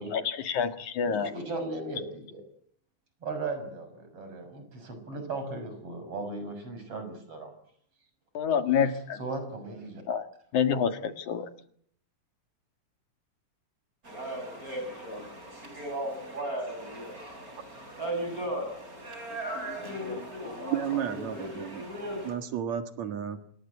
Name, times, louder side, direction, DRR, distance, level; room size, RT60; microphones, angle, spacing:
voice 1, 0.1-1.3 8.3-9.2 10.1-11.5, left 7 dB, 85° left, 8 dB, 3.4 m, -28 dB
voice 2, 1.0-2.4 3.2-7.5 9.2-10.0, right 3 dB, 50° right, 8 dB, 7.3 m, -37 dB
sound 1, 14.0-22.3, right 1 dB, 30° right, 6.5 m, -36 dB
voice 3, 14.9-15.4 19.3-21.4, left 3 dB, 50° left, 7 dB, 2.9 m, -45 dB
voice 4, 20.7-21.9 22.2-23.4, right 9 dB, 70° right, 8 dB, 3.0 m, -32 dB
28.0 x 22.0 x 8.3 m, 0.65 s
omnidirectional pair, 3.3 m